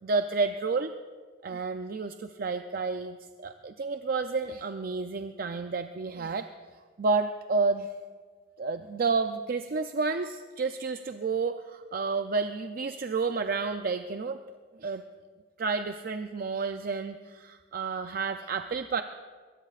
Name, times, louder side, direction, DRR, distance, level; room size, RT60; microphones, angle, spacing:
voice 1, 0.0-0.9 1.4-6.5 7.0-7.9 8.6-14.4 14.8-15.0 15.6-19.0, right 4 dB, 50° right, 7 dB, 0.5 m, -30 dB
22.5 x 19.0 x 2.5 m, 1.5 s
head